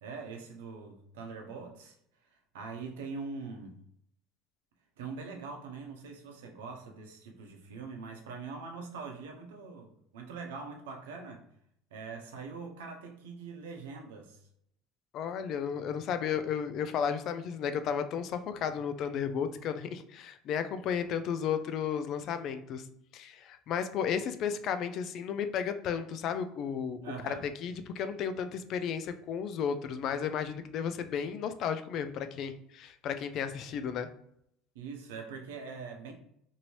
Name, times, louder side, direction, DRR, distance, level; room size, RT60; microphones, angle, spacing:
voice 1, 0.0-1.9 2.2-3.8 5.0-11.4 11.9-14.5 27.0-27.5 34.7-36.1, right 4 dB, 90° right, 3 dB, 0.6 m, -43 dB
voice 2, 15.1-22.8 23.1-27.3 27.6-34.1, left 7 dB, 55° left, 9 dB, 0.3 m, -33 dB
2.7 x 2.7 x 3.0 m, 0.73 s
supercardioid pair, 95°, 0 cm